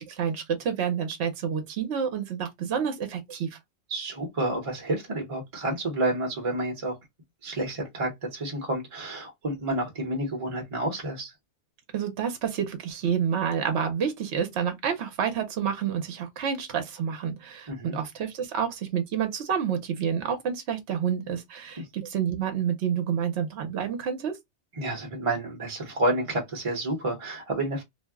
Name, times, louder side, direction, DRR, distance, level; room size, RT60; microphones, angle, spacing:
voice 1, 0.0-3.6 11.9-24.4, right 8 dB, 75° right, 1.0 m, -29 dB
voice 2, 3.9-7.0 7.4-11.3 17.7-18.0 24.8-27.8, right 1 dB, 35° right, 0.8 m, -29 dB
2.5 x 2.0 x 3.4 m
omnidirectional pair, 1.2 m